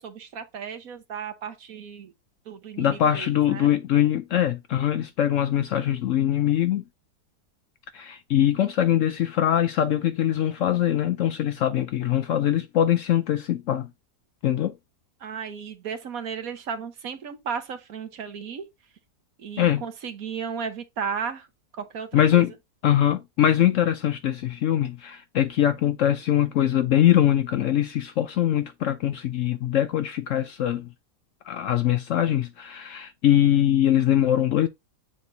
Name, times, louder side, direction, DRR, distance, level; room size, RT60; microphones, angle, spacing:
voice 1, 0.0-2.1 2.5-3.7 15.2-18.6 19.4-21.5 21.7-22.4, right 6 dB, 65° right, 1.4 m, -34 dB
voice 2, 2.8-6.8 7.9-13.9 14.4-14.8 19.6-19.8 22.1-22.5 22.8-30.9 31.4-34.7, left 11 dB, 70° left, 0.8 m, -22 dB
8.5 x 4.3 x 2.6 m
omnidirectional pair, 1.7 m